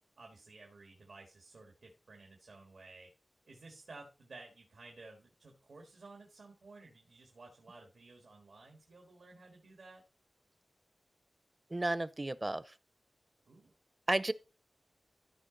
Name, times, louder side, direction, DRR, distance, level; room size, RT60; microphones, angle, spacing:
voice 1, 0.2-3.1 3.5-10.0 13.5-13.7, right 3 dB, 85° right, 1.6 m, -55 dB
voice 2, 11.7-12.7 14.1-14.3, right 2 dB, 35° right, 0.6 m, -33 dB
13.5 x 5.0 x 3.9 m
cardioid pair, 45°, 0 cm